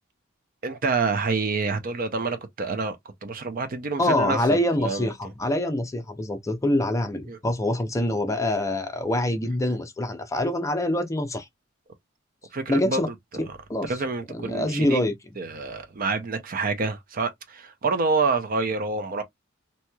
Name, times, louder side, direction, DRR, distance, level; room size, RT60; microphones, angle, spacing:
voice 1, 0.6-3.0 3.2-5.1 7.3-7.4 12.5-13.0 13.5-13.6 13.8-15.1 15.4-19.2, right 4 dB, 45° right, 0.5 m, -27 dB
voice 2, 4.0-11.5 12.7-13.1 13.7-13.9 14.3-15.1, left 1 dB, 15° left, 0.6 m, -25 dB
3.0 x 2.8 x 2.2 m
head